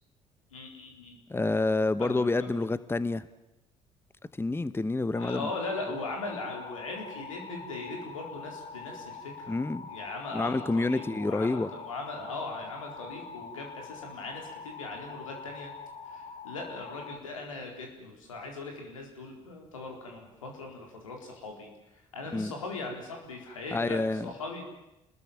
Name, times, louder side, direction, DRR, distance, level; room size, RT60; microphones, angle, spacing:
voice 1, 0.5-1.2 2.0-2.6 5.1-9.6 9.9-15.7 16.1-24.6, left 3 dB, 85° left, 2 dB, 4.3 m, -39 dB
voice 2, 1.3-3.3 4.4-5.5 9.5-9.9 10.3-11.7 22.3-22.5 23.7-24.3, left 2 dB, 15° left, 16 dB, 1.0 m, -28 dB
sound 1, 5.1-17.2, left 5 dB, 40° left, 2.5 m, -44 dB
29.5 x 20.5 x 7.5 m, 0.91 s
figure-of-eight pair, 50°, 17 cm